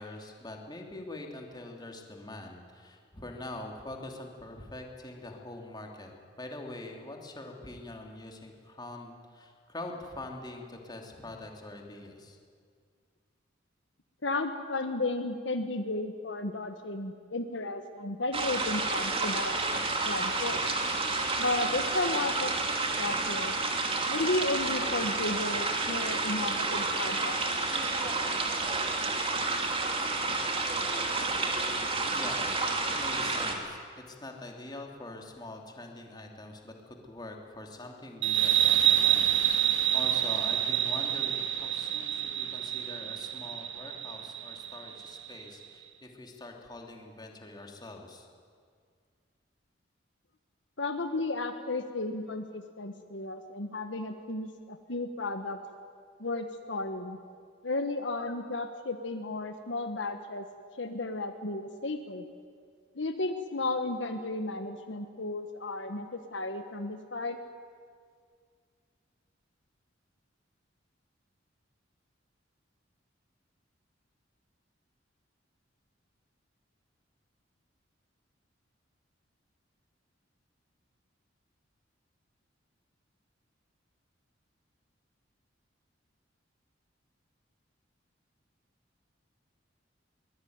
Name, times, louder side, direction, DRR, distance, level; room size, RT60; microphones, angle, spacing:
voice 1, 0.0-12.4 32.1-48.3, left 2 dB, 20° left, 2 dB, 2.9 m, -44 dB
voice 2, 14.2-20.6 21.4-22.5 23.0-23.5 24.1-27.4 50.8-55.6 56.2-57.2 57.6-60.5 60.8-62.2 62.9-67.4, left 2 dB, 70° left, 7 dB, 1.4 m, -33 dB
sound 1, 18.3-33.5, right 3 dB, 30° right, 2.7 m, -30 dB
sound 2, 38.2-45.4, right 11 dB, 70° right, 1.7 m, -27 dB
23.0 x 20.5 x 9.5 m, 2.1 s
head